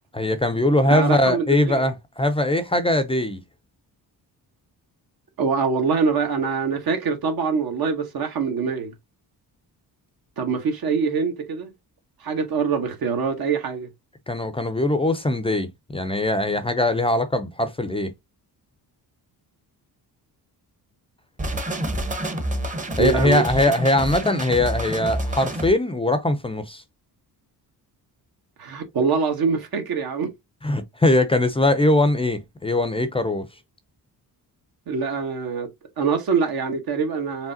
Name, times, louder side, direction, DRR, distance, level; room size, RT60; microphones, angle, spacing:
voice 1, 0.1-3.4 14.3-18.1 23.0-26.8 30.6-33.5, left 1 dB, 15° left, 0.5 m, -21 dB
voice 2, 0.9-1.8 5.4-8.9 10.4-11.7 12.2-13.9 23.0-23.4 28.6-30.3 34.9-35.7 36.0-37.5, right 5 dB, 65° right, 1.1 m, -24 dB
sound 1, 21.4-25.7, right 1 dB, 20° right, 0.8 m, -28 dB
4.9 x 3.3 x 2.6 m
cardioid pair, 135°, 39 cm